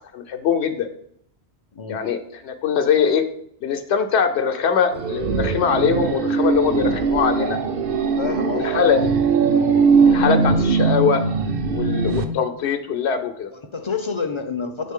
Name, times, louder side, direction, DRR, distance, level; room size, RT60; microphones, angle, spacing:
voice 1, 0.1-0.9 1.9-2.2 2.4-3.2 3.6-7.6 8.2-9.0 10.1-11.2 11.7-13.5, left 7 dB, 85° left, 6 dB, 0.9 m, -22 dB
sound 1, 4.9-12.2, right 5 dB, 60° right, 0.7 m, -20 dB
voice 2, 8.2-8.7 9.0-9.1 9.9-10.2 13.5-14.9, left 5 dB, 40° left, 7 dB, 0.4 m, -29 dB
8.4 x 3.9 x 3.6 m, 0.69 s
omnidirectional pair, 1.1 m